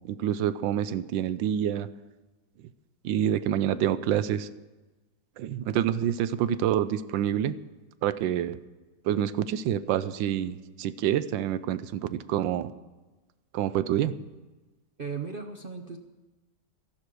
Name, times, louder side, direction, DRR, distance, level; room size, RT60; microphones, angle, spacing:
voice 1, 0.0-1.9 3.0-4.5 5.4-7.5 8.0-8.6 9.0-12.7 13.5-14.1, right 10 dB, 90° right, 15 dB, 1.4 m, -27 dB
voice 2, 15.0-16.0, right 5 dB, 55° right, 5 dB, 0.6 m, -36 dB
13.5 x 11.5 x 6.2 m, 1.2 s
omnidirectional pair, 2.0 m